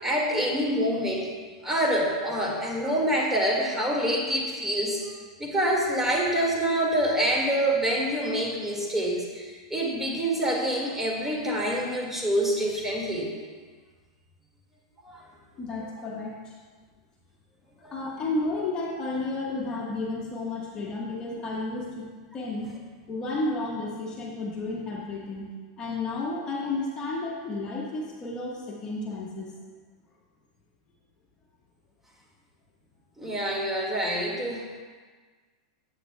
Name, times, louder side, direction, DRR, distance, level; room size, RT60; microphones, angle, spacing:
voice 1, 0.0-1.3 1.6-5.0 5.4-13.3 15.1-15.2 17.8-18.0 33.2-34.7, right 1 dB, 10° right, -3 dB, 1.9 m, -26 dB
voice 2, 15.6-16.5 17.8-22.0 22.3-22.7 23.1-25.5 25.8-29.5, left 2 dB, 30° left, -3 dB, 1.3 m, -32 dB
10.5 x 8.2 x 2.2 m, 1.5 s
hypercardioid pair, 115°, 3 cm